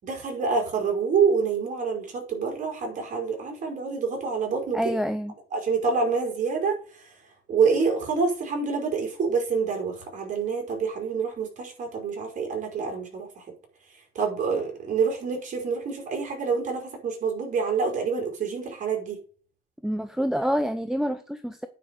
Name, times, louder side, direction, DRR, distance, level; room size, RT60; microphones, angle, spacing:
voice 1, 0.0-4.8 5.5-6.8 7.5-13.3 14.2-19.2, right 5 dB, 45° right, 2 dB, 5.2 m, -27 dB
voice 2, 4.7-5.3 19.8-21.7, equal, 5° right, 9 dB, 0.7 m, -27 dB
9.7 x 5.0 x 6.8 m, 0.40 s
cardioid pair, 110°, 17 cm